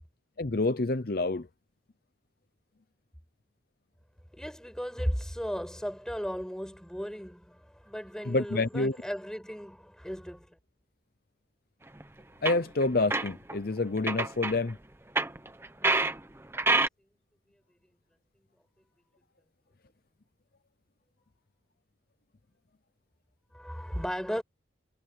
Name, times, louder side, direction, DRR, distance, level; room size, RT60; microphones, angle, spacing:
voice 1, 0.4-1.5 8.3-9.0 12.4-14.8, left 2 dB, 50° left, 0.7 m, -28 dB
voice 2, 4.3-10.6 23.5-24.4, equal, 5° left, 5.3 m, -36 dB
sound 1, 12.0-12.1 12.4-13.6 14.0-14.6 15.1-16.2 16.5-16.9, right 3 dB, 10° right, 1.0 m, -27 dB
head